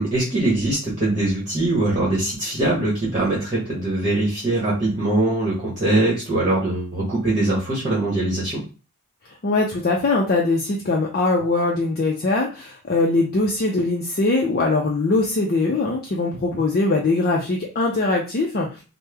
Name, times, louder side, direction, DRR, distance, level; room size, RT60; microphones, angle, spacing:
voice 1, 0.0-8.6, right 2 dB, 35° right, -6 dB, 1.0 m, -22 dB
voice 2, 9.4-18.7, left 3 dB, 45° left, -1 dB, 0.5 m, -21 dB
3.1 x 2.1 x 3.4 m, 0.33 s
head